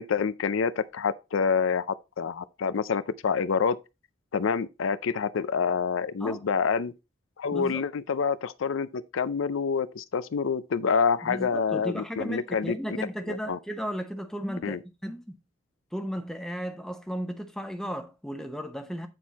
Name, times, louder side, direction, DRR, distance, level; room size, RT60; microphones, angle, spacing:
voice 1, 0.0-1.9 2.2-3.8 4.3-6.9 7.4-13.0 13.3-13.6 14.6-14.8, left 5 dB, 80° left, 0.5 m, -27 dB
voice 2, 7.5-7.8 11.2-15.4 15.9-19.1, equal, 5° left, 0.8 m, -35 dB
9.2 x 4.5 x 4.1 m
head